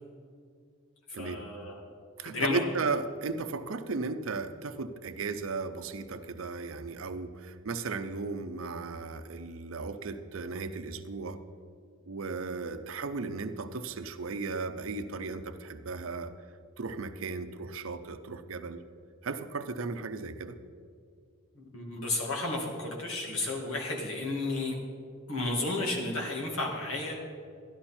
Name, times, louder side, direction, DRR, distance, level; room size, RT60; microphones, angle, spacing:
voice 1, 1.2-1.8 2.2-2.6 21.5-24.8 25.3-27.3, left 2 dB, 85° left, -1 dB, 2.3 m, -32 dB
voice 2, 2.2-11.4 12.1-16.3 16.8-18.8 19.2-20.6, right 4 dB, 70° right, 10 dB, 0.6 m, -35 dB
12.5 x 11.5 x 4.4 m, 2.3 s
head